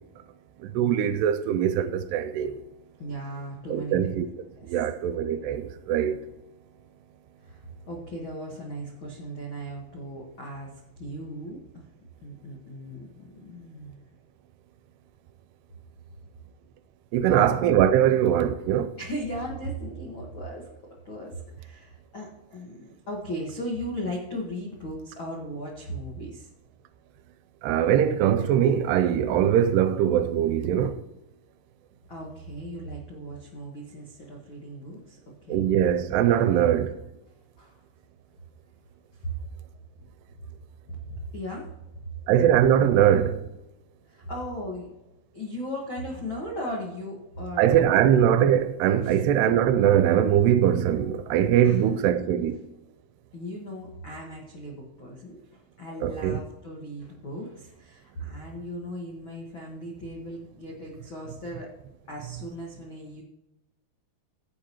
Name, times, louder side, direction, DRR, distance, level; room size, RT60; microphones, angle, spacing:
voice 1, 0.6-2.6 3.7-4.3 4.6-6.2 17.1-18.9 27.6-30.9 35.5-36.9 42.3-43.4 47.6-52.6 56.0-56.4, right 10 dB, 85° right, 2.5 m, -22 dB
voice 2, 3.0-4.1 4.5-4.9 7.4-11.9 12.2-14.0 17.4-17.5 19.0-26.5 32.1-35.7 37.6-37.8 39.1-39.4 40.9-41.7 42.1-42.2 44.0-44.9 45.3-48.1 49.0-49.2 51.6-51.8 53.3-61.7 62.1-63.2, equal, 70° left, 1.1 m, -37 dB
16.0 x 7.7 x 3.0 m
omnidirectional pair, 4.9 m